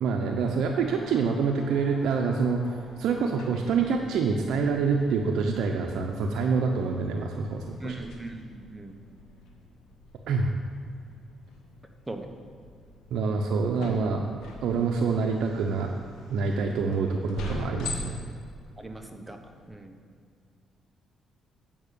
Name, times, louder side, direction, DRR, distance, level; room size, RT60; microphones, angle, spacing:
voice 1, 0.0-7.9 10.3-10.5 13.1-14.3 14.6-16.0 16.3-18.2, right 5 dB, 80° right, 2 dB, 0.6 m, -26 dB
sound 1, 0.8-19.7, left 2 dB, 85° left, 1.2 m, -44 dB
voice 2, 7.8-8.9 12.1-12.3 18.8-19.4 19.7-20.0, right 2 dB, 10° right, 4 dB, 1.0 m, -39 dB
8.8 x 5.4 x 6.8 m, 2.2 s
cardioid pair, 90°, 0 cm